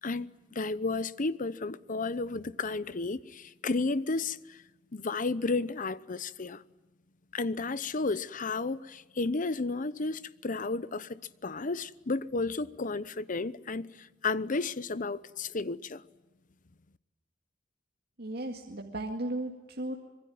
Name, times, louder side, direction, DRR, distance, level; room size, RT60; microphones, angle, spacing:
voice 1, 0.0-4.6 4.9-6.6 7.3-16.0, left 3 dB, 40° left, 0.8 m, -32 dB
voice 2, 18.2-20.0, right 1 dB, 55° right, 2.0 m, -35 dB
25.5 x 22.0 x 9.3 m
head